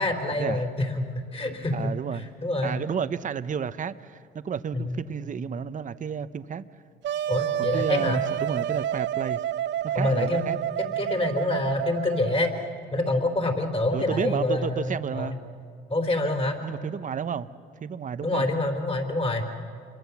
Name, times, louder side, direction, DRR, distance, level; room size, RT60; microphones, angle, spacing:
voice 1, 0.0-2.0 2.4-2.8 4.7-5.0 7.3-8.2 9.9-10.5 11.0-12.5 12.9-15.4 15.9-16.6 18.2-19.5, left 2 dB, 30° left, 3.6 m, -26 dB
voice 2, 1.7-2.3 2.6-6.6 7.6-9.4 9.8-10.6 13.9-15.4 16.6-17.5 17.8-18.5, right 7 dB, 40° right, 0.8 m, -31 dB
Wind instrument woodwind instrument, 7.0-12.5, right 11 dB, 65° right, 0.5 m, -29 dB
27.5 x 22.0 x 7.1 m
cardioid pair, 90°, 20 cm